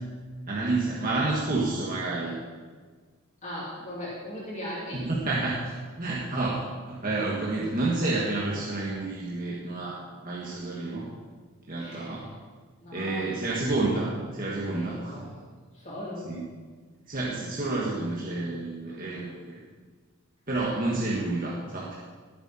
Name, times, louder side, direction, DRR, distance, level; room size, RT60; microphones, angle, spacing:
voice 1, 0.5-2.3 4.9-5.6 6.0-11.1 11.7-12.3 12.9-15.2 16.2-16.4 17.1-19.6 20.5-22.0, right 2 dB, 40° right, -6 dB, 1.8 m, -29 dB
voice 2, 3.4-5.1 11.8-12.3 12.8-14.1 14.4-15.2 15.7-16.3 18.9-19.0, equal, 30° left, -7 dB, 3.4 m, -39 dB
19.0 x 7.9 x 4.4 m, 1.5 s
head